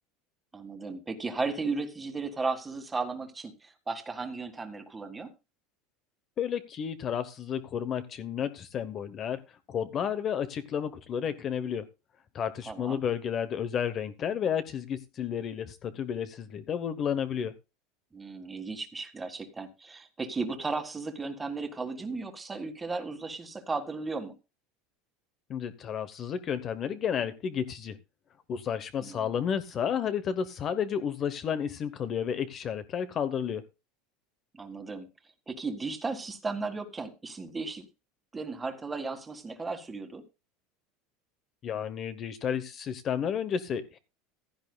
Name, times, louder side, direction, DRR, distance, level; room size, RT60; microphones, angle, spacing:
voice 1, 0.5-5.3 12.7-13.0 18.1-24.3 29.0-29.3 34.5-35.1 35.5-37.9 38.3-40.2, right 4 dB, 10° right, 7 dB, 1.8 m, -35 dB
voice 2, 6.4-9.4 9.7-11.8 12.3-17.5 25.5-28.0 28.5-33.6 41.6-44.0, left 8 dB, 30° left, 12 dB, 0.9 m, -32 dB
16.0 x 12.5 x 2.3 m, 0.28 s
supercardioid pair, 155°, 0 cm